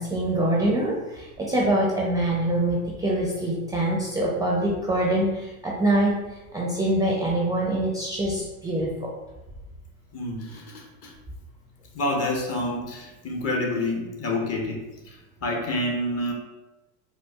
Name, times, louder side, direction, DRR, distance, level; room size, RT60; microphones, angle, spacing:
voice 1, 0.0-6.2 6.5-9.1, right 1 dB, 10° right, -4 dB, 0.4 m, -24 dB
voice 2, 10.1-11.1 11.9-15.2 15.4-16.3, left 1 dB, 35° left, 1 dB, 0.7 m, -28 dB
4.5 x 2.0 x 2.3 m, 1.0 s
hypercardioid pair, 85°, 44 cm